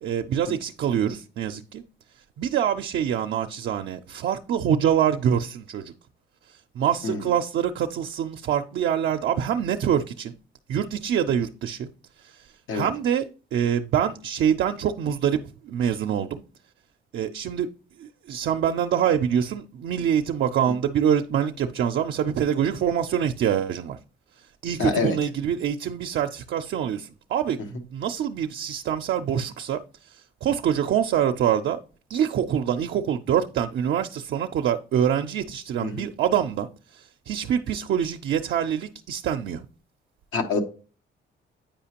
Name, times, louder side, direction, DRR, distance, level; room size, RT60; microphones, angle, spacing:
voice 1, 0.0-1.8 2.4-5.9 6.5-10.4 10.7-11.9 12.2-13.2 13.5-16.4 17.1-17.7 18.0-24.0 24.6-31.8 32.1-39.6, right 9 dB, 65° right, 0.4 m, -25 dB
voice 2, 24.8-25.2 35.8-36.0 40.3-40.6, left 4 dB, 85° left, 1.0 m, -26 dB
8.8 x 4.9 x 2.8 m
cardioid pair, 90°, 20 cm